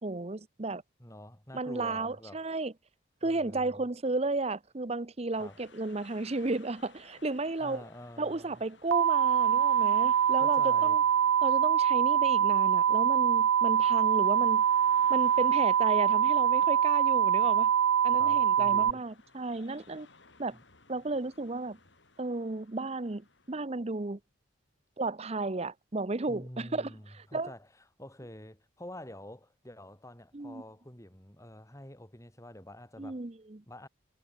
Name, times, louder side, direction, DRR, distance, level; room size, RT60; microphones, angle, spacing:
voice 1, 0.0-0.8 1.5-2.7 3.2-7.8 8.2-11.0 11.4-14.6 15.1-17.7 18.0-20.1 20.4-20.6 20.9-21.8 22.2-24.2 25.0-27.5 30.3-30.6 33.0-33.6, right 2 dB, 30° right, 0.8 m, -33 dB
voice 2, 1.0-2.5 3.2-3.9 5.4-5.6 7.6-8.6 10.4-11.0 18.1-19.0 20.5-20.6 26.3-27.7 28.0-33.2 33.7-33.9, left 1 dB, 15° left, 3.3 m, -48 dB
sound 1, 5.3-23.5, left 4 dB, 65° left, 5.7 m, -60 dB
sound 2, 8.9-18.9, right 9 dB, 85° right, 0.4 m, -24 dB
head